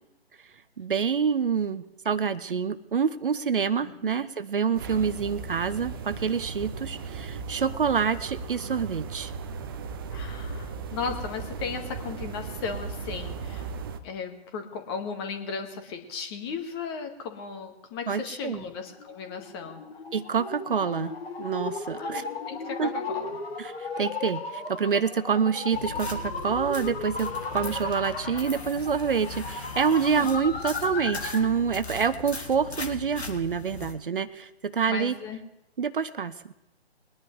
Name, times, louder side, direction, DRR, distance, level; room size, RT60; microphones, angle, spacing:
voice 1, 0.8-9.3 18.1-18.6 20.1-21.1 21.4-22.2 22.8-22.9 23.6-35.1 35.8-36.3, right 6 dB, 55° right, 14 dB, 0.8 m, -27 dB
voice 2, 3.8-4.1 10.1-13.7 14.0-19.8 22.0-23.4 30.2-30.3 34.9-35.4, left 5 dB, 25° left, 5 dB, 1.7 m, -36 dB
sound 1, 4.7-14.0, right 5 dB, 20° right, 0.7 m, -37 dB
sound 2, 18.9-31.6, left 3 dB, 65° left, 1.9 m, -36 dB
sound 3, 25.7-33.9, left 3 dB, 85° left, 2.0 m, -39 dB
22.0 x 10.5 x 3.2 m, 0.94 s
figure-of-eight pair, 135°, 32 cm